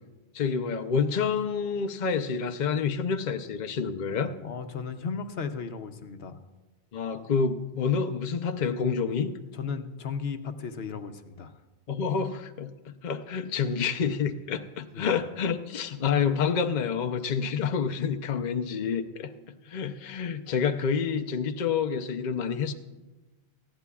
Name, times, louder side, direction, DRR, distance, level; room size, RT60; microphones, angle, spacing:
voice 1, 0.3-4.3 6.9-9.3 11.9-19.3 19.7-22.7, left 6 dB, 50° left, 8 dB, 0.7 m, -28 dB
voice 2, 4.4-6.4 9.5-11.5 14.9-15.1, left 5 dB, 75° left, 9 dB, 0.9 m, -35 dB
19.5 x 15.0 x 2.3 m, 1.2 s
omnidirectional pair, 1.1 m